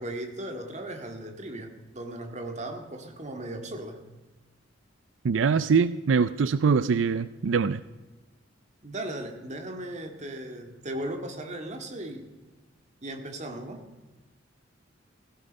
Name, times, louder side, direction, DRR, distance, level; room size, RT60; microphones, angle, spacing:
voice 1, 0.0-4.0 8.8-12.3 13.0-13.8, right 1 dB, 40° right, 4 dB, 2.1 m, -37 dB
voice 2, 5.2-7.8, right 5 dB, 85° right, 15 dB, 0.4 m, -23 dB
16.5 x 16.0 x 5.3 m, 1.2 s
head